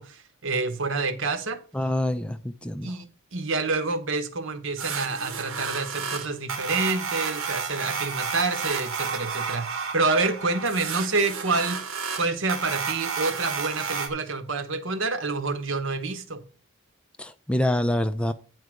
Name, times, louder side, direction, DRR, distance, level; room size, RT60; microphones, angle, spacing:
voice 1, 0.0-1.6 2.8-16.4, right 3 dB, 65° right, 1.0 m, -28 dB
voice 2, 1.7-3.0 17.2-18.3, left 1 dB, 5° left, 0.4 m, -26 dB
sound 1, 4.8-14.1, right 5 dB, 90° right, 1.5 m, -31 dB
9.4 x 4.7 x 6.2 m
head